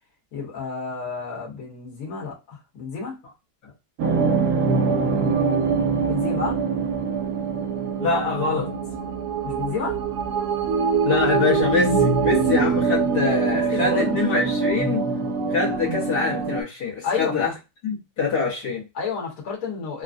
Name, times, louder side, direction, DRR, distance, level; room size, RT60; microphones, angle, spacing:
voice 1, 0.3-3.2 6.1-6.6 9.4-10.0 13.5-14.2 17.0-17.5 18.9-20.0, left 5 dB, 60° left, -3 dB, 1.7 m, -30 dB
sound 1, 4.0-16.6, right 5 dB, 75° right, 1.1 m, -23 dB
voice 2, 8.0-8.7 11.0-15.1 15.5-17.5 17.8-18.8, left 4 dB, 75° left, -6 dB, 1.7 m, -24 dB
3.7 x 2.1 x 2.5 m, 0.25 s
omnidirectional pair, 1.8 m